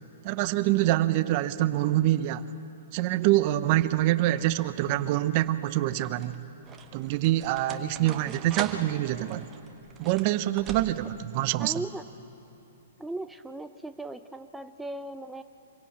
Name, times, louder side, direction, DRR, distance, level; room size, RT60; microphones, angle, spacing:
voice 1, 0.2-2.5 2.9-6.3 6.9-9.5 10.0-11.7, right 15 dB, 45° right, 0.7 m, -25 dB
sound 1, 5.8-11.3, right 6 dB, 20° right, 1.4 m, -42 dB
voice 2, 11.6-12.0 13.0-15.4, right 2 dB, 5° right, 0.6 m, -38 dB
26.0 x 16.5 x 8.7 m
hypercardioid pair, 125°, 0 cm